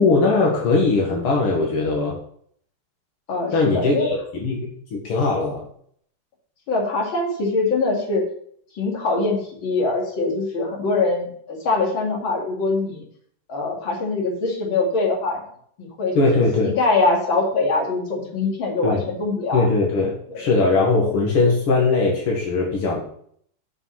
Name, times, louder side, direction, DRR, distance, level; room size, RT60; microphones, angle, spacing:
voice 1, 0.0-2.2 3.5-5.6 16.2-16.7 18.8-19.0 19.5-23.0, left 3 dB, 80° left, -2 dB, 2.6 m, -20 dB
voice 2, 3.3-4.1 6.7-8.2 8.8-13.0 13.5-15.4 15.8-16.2 16.6-19.7 20.3-20.5 20.8-21.0, left 3 dB, 65° left, -1 dB, 3.0 m, -23 dB
8.9 x 5.4 x 6.4 m, 0.62 s
omnidirectional pair, 2.4 m